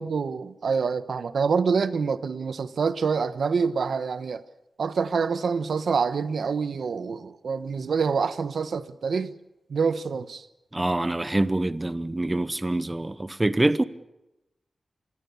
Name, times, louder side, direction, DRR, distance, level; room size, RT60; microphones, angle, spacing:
voice 1, 0.0-4.4 4.8-9.3 9.7-10.5, right 5 dB, 80° right, 1.1 m, -26 dB
voice 2, 10.7-13.8, right 2 dB, 20° right, 0.8 m, -25 dB
27.0 x 21.0 x 7.1 m
wide cardioid pair, 130°, 0 cm